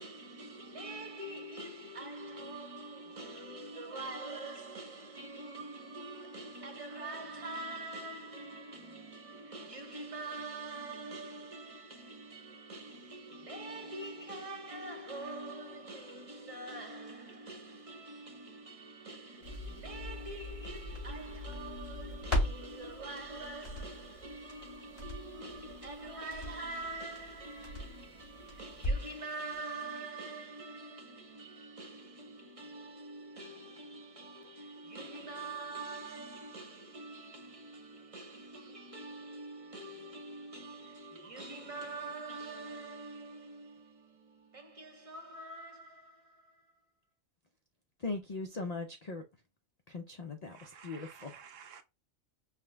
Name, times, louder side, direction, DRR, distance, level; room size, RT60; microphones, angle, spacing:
voice 1, 0.0-46.7, right 2 dB, 30° right, 0.8 m, -44 dB
Crackle, 19.4-29.2 29.5-29.6, left 1 dB, 45° left, 3.0 m, -39 dB
voice 2, 48.0-49.2 49.9-51.3, left 3 dB, 65° left, 0.4 m, -39 dB
voice 3, 50.5-51.8, right 7 dB, 70° right, 1.0 m, -52 dB
5.7 x 2.2 x 3.3 m
omnidirectional pair, 1.4 m